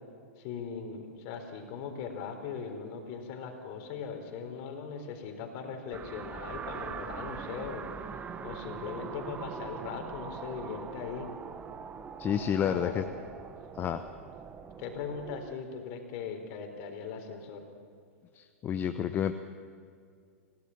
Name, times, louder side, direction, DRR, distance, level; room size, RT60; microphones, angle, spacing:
voice 1, 0.4-7.9 8.4-11.3 12.6-13.1 14.8-17.7, left 6 dB, 45° left, 5 dB, 4.2 m, -39 dB
sound 1, 5.9-15.5, right 6 dB, 20° right, 1.1 m, -42 dB
voice 2, 12.2-13.0 13.8-14.0 18.3-19.3, left 9 dB, 25° left, 9 dB, 0.9 m, -30 dB
26.0 x 17.0 x 7.4 m, 2.3 s
figure-of-eight pair, 105°, 8 cm